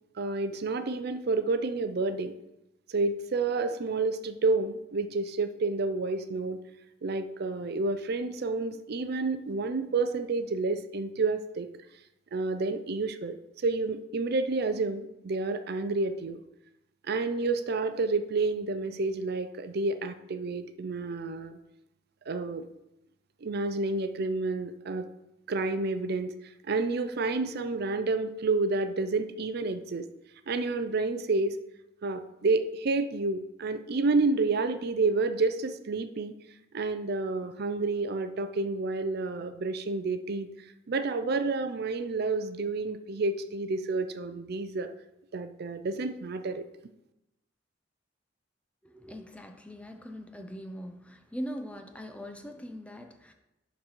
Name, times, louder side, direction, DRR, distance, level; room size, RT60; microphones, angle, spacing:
voice 1, 0.2-2.4 2.9-6.6 7.0-11.7 12.3-13.3 13.6-16.4 17.1-21.6 22.3-22.7 23.4-25.1 25.5-26.3 26.7-30.1 30.5-31.6 32.0-36.3 36.7-40.5 40.9-44.9 45.3-46.6, right 3 dB, 60° right, 10 dB, 0.5 m, -29 dB
voice 2, 48.8-53.3, equal, 5° left, 5 dB, 0.6 m, -41 dB
11.5 x 4.0 x 4.5 m, 0.90 s
head